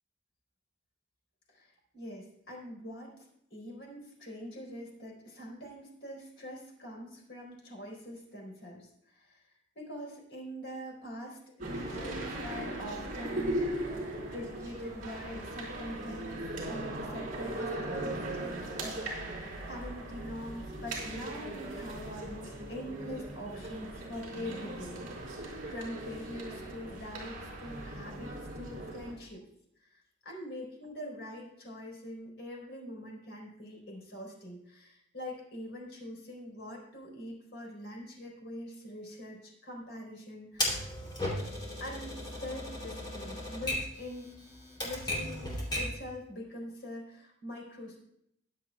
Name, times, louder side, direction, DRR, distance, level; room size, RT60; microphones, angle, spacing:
voice 1, 1.5-3.3 3.5-9.5 9.7-13.8 14.2-29.4 29.8-40.9 41.8-44.3 44.8-48.0, equal, 60° left, -1 dB, 4.2 m, -44 dB
sound 1, 11.6-29.1, right 1 dB, 45° right, 4.1 m, -38 dB
Typewriter, 40.6-46.0, left 1 dB, 25° left, 2.9 m, -36 dB
22.0 x 7.9 x 2.3 m, 0.74 s
head